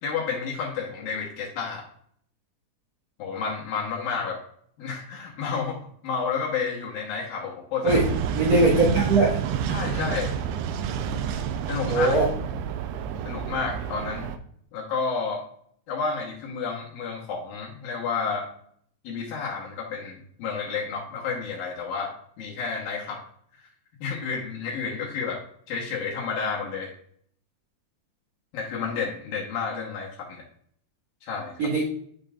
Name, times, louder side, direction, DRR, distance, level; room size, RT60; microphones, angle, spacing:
voice 1, 0.0-1.8 3.2-4.4 4.8-8.0 9.7-10.3 11.7-12.2 13.2-14.3 14.7-15.4 15.9-18.5 19.0-23.2 24.0-25.4 25.7-26.9 28.5-30.4 31.2-31.7, left 5 dB, 70° left, -2 dB, 2.5 m, -30 dB
sound 1, 7.9-14.4, right 8 dB, 90° right, 2.3 m, -29 dB
voice 2, 8.4-9.4 11.9-12.3 31.6-31.8, right 2 dB, 55° right, -6 dB, 2.0 m, -20 dB
9.9 x 5.3 x 2.4 m, 0.63 s
omnidirectional pair, 5.1 m